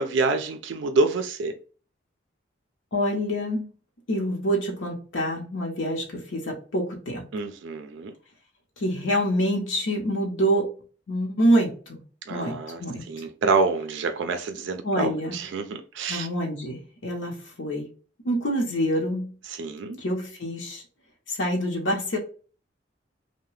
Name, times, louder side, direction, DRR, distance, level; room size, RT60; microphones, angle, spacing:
voice 1, 0.0-1.5 7.3-8.1 12.3-12.8 13.1-16.3 19.6-20.0, right 3 dB, 70° right, 0.4 m, -27 dB
voice 2, 2.9-3.7 4.1-7.2 8.8-10.7 11.1-12.0 12.3-13.3 14.8-15.4 16.1-17.9 18.2-19.3 20.0-20.8 21.3-22.2, equal, 75° left, 0.8 m, -26 dB
2.8 x 2.1 x 3.1 m
head